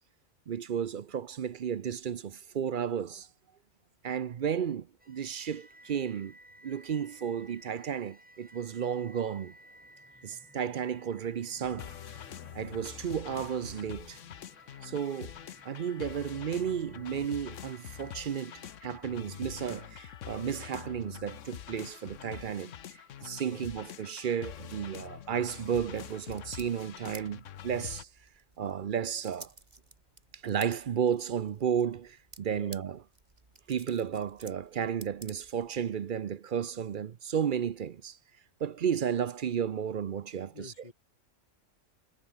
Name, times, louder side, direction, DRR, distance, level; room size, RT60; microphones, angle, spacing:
voice 1, 0.5-3.3 4.0-6.4 6.6-9.5 10.2-12.2 12.5-14.2 14.8-15.3 15.6-18.5 18.8-28.1 28.6-29.5 30.4-33.0 33.7-38.2 38.6-40.7, right 8 dB, 50° right, 0.7 m, -33 dB
sound 1, 5.0-20.1, right 1 dB, 5° right, 2.0 m, -57 dB
sound 2, 11.6-28.0, left 10 dB, 80° left, 1.2 m, -45 dB
sound 3, 25.9-35.9, right 2 dB, 35° right, 2.6 m, -55 dB
voice 2, 32.5-32.8 40.5-40.9, left 3 dB, 35° left, 2.6 m, -49 dB
omnidirectional pair, 1.3 m